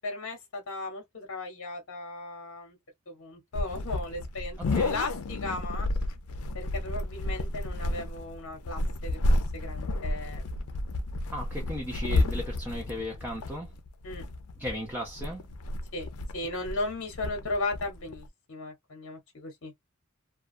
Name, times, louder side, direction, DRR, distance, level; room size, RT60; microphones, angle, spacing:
voice 1, 0.0-2.8 3.1-4.6 4.9-5.9 6.5-9.2 9.5-10.7 14.0-14.2 15.9-16.1 16.3-19.7, left 2 dB, 60° left, 0.9 m, -36 dB
sound 1, 3.5-18.3, left 2 dB, 85° left, 0.5 m, -31 dB
voice 2, 4.6-5.0 11.3-13.8 14.6-15.5, equal, 10° right, 0.6 m, -36 dB
2.4 x 2.3 x 2.4 m
head